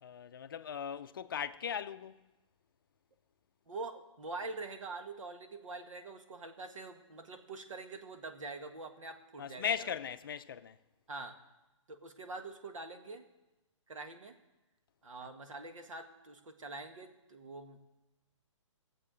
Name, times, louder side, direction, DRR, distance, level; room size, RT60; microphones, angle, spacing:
voice 1, 0.0-2.2 9.4-10.8 15.2-15.3, left 8 dB, 45° left, 0.5 m, -38 dB
voice 2, 3.7-9.9 11.1-11.4 11.9-13.3 13.9-14.4 15.0-17.8, right 3 dB, 85° right, 1.7 m, -45 dB
17.5 x 7.6 x 5.1 m
hypercardioid pair, 170°, 16 cm